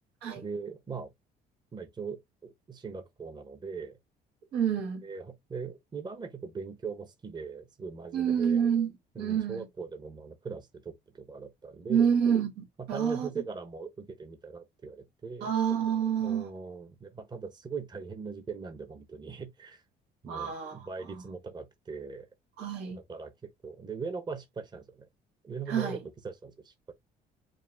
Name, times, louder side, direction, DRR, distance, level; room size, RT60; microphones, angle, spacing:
voice 1, 0.4-1.1 1.7-4.0 5.0-8.6 9.1-12.1 12.9-15.5 16.2-19.8 20.2-22.3 22.9-25.1 25.4-26.0 26.2-26.9, right 5 dB, 25° right, 0.9 m, -40 dB
voice 2, 4.5-5.1 8.1-8.9 9.2-9.7 11.9-13.3 15.4-16.5 20.2-21.2 22.6-23.0 25.7-26.0, right 8 dB, 90° right, 2.0 m, -28 dB
5.2 x 2.3 x 3.3 m
cardioid pair, 110°, 17 cm